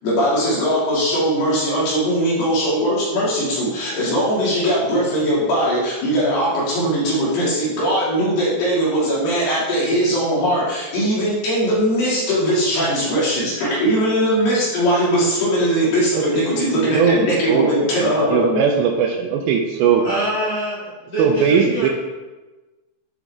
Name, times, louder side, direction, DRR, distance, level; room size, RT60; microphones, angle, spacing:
voice 1, 0.0-18.6, equal, 60° left, -7 dB, 4.3 m, -20 dB
voice 2, 16.8-17.2 17.5-17.7 18.0-20.0 21.2-21.9, right 7 dB, 80° right, 2 dB, 2.6 m, -19 dB
voice 3, 20.0-21.9, right 1 dB, 80° left, -8 dB, 0.8 m, -25 dB
8.9 x 6.2 x 3.6 m, 1.2 s
omnidirectional pair, 5.5 m